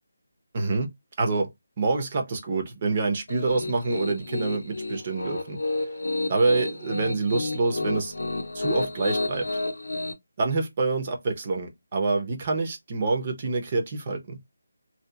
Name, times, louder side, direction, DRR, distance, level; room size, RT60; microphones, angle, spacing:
voice 1, 0.5-1.5 1.8-5.6 6.3-8.1 8.5-9.5 10.4-14.4, right 3 dB, 35° right, 0.7 m, -26 dB
Piano, 3.3-10.1, left 2 dB, 80° left, 0.7 m, -30 dB
2.8 x 2.3 x 2.3 m
figure-of-eight pair, 165°, 0 cm